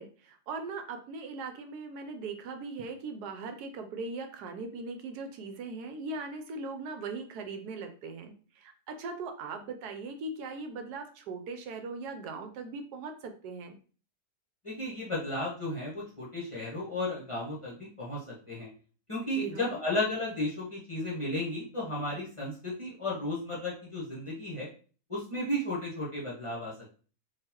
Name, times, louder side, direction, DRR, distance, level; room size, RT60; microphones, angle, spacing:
voice 1, 0.0-13.8 19.3-19.8, right 3 dB, 80° right, 6 dB, 1.1 m, -39 dB
voice 2, 14.6-18.7 19.1-24.7 25.1-26.7, left 1 dB, 25° left, -6 dB, 0.9 m, -34 dB
3.8 x 2.8 x 2.9 m, 0.39 s
omnidirectional pair, 1.7 m